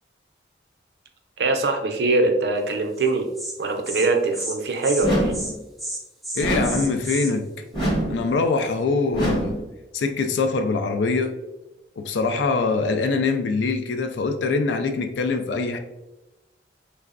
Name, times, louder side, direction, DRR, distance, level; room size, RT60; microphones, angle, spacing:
voice 1, 1.4-3.3 3.6-5.4, right 3 dB, 65° right, 5 dB, 0.4 m, -22 dB
Insect, 3.0-3.1 3.4-3.5 3.8-4.1 4.3-4.5 4.8-5.1 5.3-5.5 5.8-7.3, right 1 dB, ahead, 0.4 m, -31 dB
sound 1, 5.0-5.6 6.4-7.0 7.7-8.3 9.1-9.7, right 1 dB, 25° left, 0.8 m, -24 dB
voice 2, 6.3-7.5 8.1-9.6 9.9-11.4 12.0-15.8, left 4 dB, 80° left, 7 dB, 0.4 m, -23 dB
3.3 x 2.0 x 2.4 m, 0.98 s
head